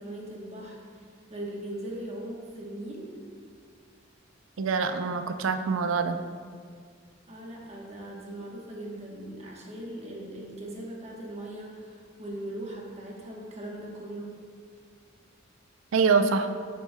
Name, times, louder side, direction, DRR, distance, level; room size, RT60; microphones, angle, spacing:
voice 1, 0.0-3.2 7.3-14.3, right 1 dB, 35° right, -2 dB, 1.1 m, -39 dB
voice 2, 4.6-6.2 15.9-16.5, right 5 dB, 85° right, 8 dB, 0.4 m, -25 dB
7.3 x 7.0 x 2.2 m, 2.1 s
head